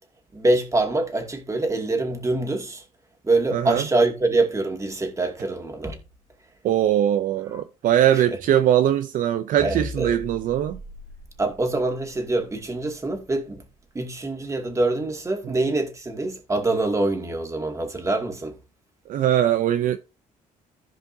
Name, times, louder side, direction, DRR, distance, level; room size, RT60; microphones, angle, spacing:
voice 1, 0.3-2.8 3.2-6.0 7.5-7.6 8.1-8.4 9.6-10.1 11.4-13.6 13.9-18.6, right 2 dB, 20° right, 2.3 m, -25 dB
voice 2, 3.5-3.9 6.6-10.8 15.5-15.6 19.1-20.0, right 11 dB, 65° right, 0.6 m, -21 dB
sound 1, 9.6-14.1, left 3 dB, 35° left, 1.6 m, -40 dB
15.0 x 5.1 x 2.8 m
cardioid pair, 100°, 15 cm